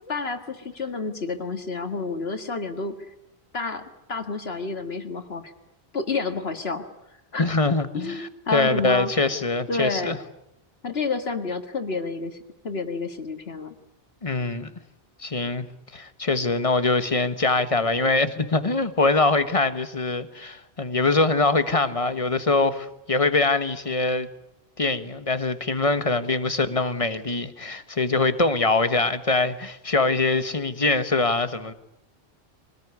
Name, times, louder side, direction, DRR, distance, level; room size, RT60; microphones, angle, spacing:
voice 1, 0.1-3.0 3.5-5.5 5.9-6.8 7.3-7.5 7.9-9.1 9.7-10.2 10.8-12.4 12.6-13.7, left 4 dB, 75° left, 2.1 m, -29 dB
voice 2, 7.4-10.2 14.2-14.7 15.2-15.7 15.9-24.3 24.8-31.7, left 3 dB, 35° left, 1.4 m, -23 dB
24.5 x 19.0 x 9.6 m
omnidirectional pair, 1.0 m